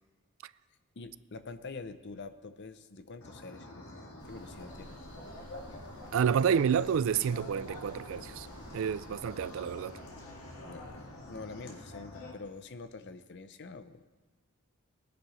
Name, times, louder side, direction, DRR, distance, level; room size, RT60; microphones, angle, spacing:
voice 1, 1.0-5.0 10.6-14.0, left 3 dB, 50° left, 0.6 m, -46 dB
sound 1, 3.2-12.3, left 1 dB, 80° left, 2.0 m, -47 dB
sound 2, 4.2-11.3, right 1 dB, 20° right, 2.2 m, -55 dB
voice 2, 6.1-8.5 8.7-9.9, right 7 dB, 60° right, 0.3 m, -29 dB
19.5 x 10.0 x 3.2 m
head